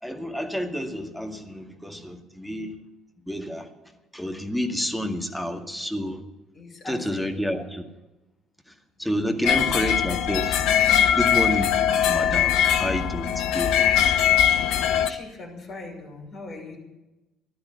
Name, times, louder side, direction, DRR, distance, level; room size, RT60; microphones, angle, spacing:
voice 1, 0.0-2.8 3.3-3.7 4.1-6.2 6.9-7.8 9.0-11.8 12.1-13.8, equal, ahead, 3 dB, 2.0 m, -29 dB
voice 2, 6.5-7.5 9.3-9.7 13.7-14.4 15.1-16.8, left 2 dB, 40° left, -1 dB, 6.2 m, -41 dB
sound 1, 9.4-15.1, left 9 dB, 60° left, 1.0 m, -21 dB
15.5 x 12.0 x 7.1 m, 1.0 s
figure-of-eight pair, 55°, 0 cm